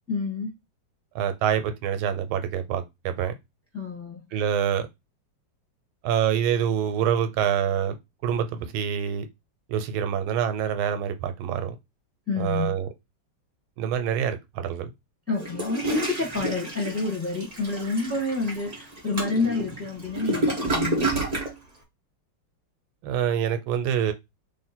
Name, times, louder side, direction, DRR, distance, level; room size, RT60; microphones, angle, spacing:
voice 1, 0.1-0.5 3.7-4.4 12.3-12.7 15.3-21.1, left 3 dB, 10° left, 1.1 m, -28 dB
voice 2, 1.1-3.3 4.3-4.9 6.0-8.0 8.2-9.3 9.7-11.7 12.4-12.9 13.8-14.9 23.0-24.1, right 8 dB, 90° right, 1.5 m, -26 dB
Toilet flush, 15.4-21.5, right 2 dB, 35° right, 0.6 m, -29 dB
3.4 x 2.6 x 4.2 m
omnidirectional pair, 2.2 m